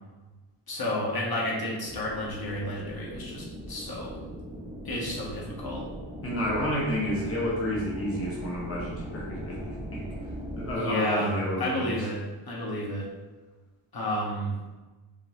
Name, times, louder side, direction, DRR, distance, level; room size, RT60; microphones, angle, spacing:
voice 1, 0.7-4.3 4.8-5.9 10.8-11.3 11.6-13.1 13.9-14.6, left 1 dB, 45° left, -4 dB, 1.2 m, -31 dB
sound 1, 1.9-10.7, equal, 10° right, 0.6 m, -39 dB
voice 2, 6.2-10.0 10.5-12.0, equal, 25° left, -5 dB, 1.0 m, -30 dB
5.0 x 3.9 x 2.6 m, 1.2 s
wide cardioid pair, 135°, 50 cm